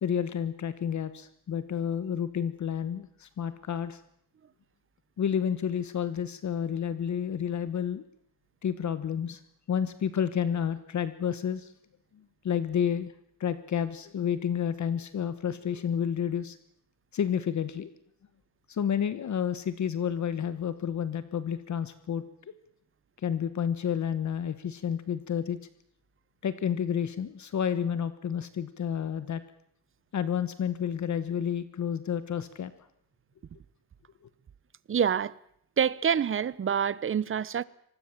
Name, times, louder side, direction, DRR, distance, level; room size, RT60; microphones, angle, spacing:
voice 1, 0.0-4.0 5.2-8.0 8.6-9.4 9.7-11.7 12.1-13.1 13.4-16.6 17.1-17.9 18.7-22.5 23.2-25.6 26.4-29.4 30.1-32.7, left 8 dB, 50° left, 1.4 m, -30 dB
voice 2, 34.9-35.3 35.8-37.6, right 7 dB, 35° right, 0.9 m, -26 dB
25.0 x 20.0 x 7.4 m
cardioid pair, 115°, 38 cm